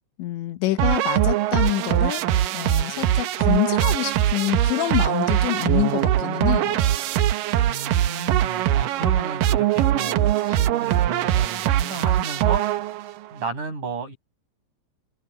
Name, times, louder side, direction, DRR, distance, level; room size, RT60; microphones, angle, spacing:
voice 1, 0.2-2.3 2.5-6.9, left 15 dB, 85° left, 3.5 m, -26 dB
sound 1, 0.8-13.2, right 12 dB, 85° right, 1.9 m, -22 dB
voice 2, 7.7-12.9 13.3-14.2, right 4 dB, 45° right, 8.2 m, -33 dB
omnidirectional pair, 5.1 m